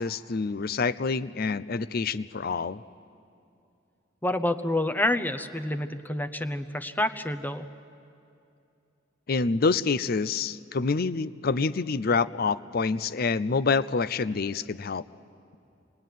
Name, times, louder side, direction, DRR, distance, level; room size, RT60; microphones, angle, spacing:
voice 1, 0.0-2.8 9.3-15.0, left 4 dB, 55° left, 15 dB, 0.6 m, -27 dB
voice 2, 4.2-7.7, left 1 dB, 10° left, 9 dB, 0.8 m, -28 dB
27.0 x 21.0 x 9.3 m, 2.6 s
head